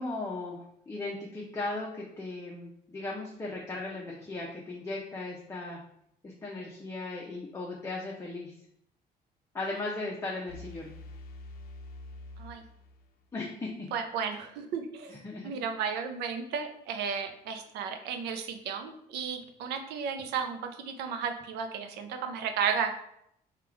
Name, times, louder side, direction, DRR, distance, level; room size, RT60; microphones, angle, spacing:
voice 1, 0.0-5.8 6.2-8.5 9.5-10.9 13.3-13.9 15.1-15.5, left 2 dB, 15° left, -3 dB, 0.7 m, -37 dB
sound 1, 10.5-13.4, left 2 dB, 60° left, 0.5 m, -46 dB
voice 2, 13.9-15.2 15.4-23.0, right 6 dB, 85° right, 6 dB, 0.6 m, -33 dB
3.6 x 2.4 x 4.5 m, 0.73 s
cardioid pair, 110°, 17 cm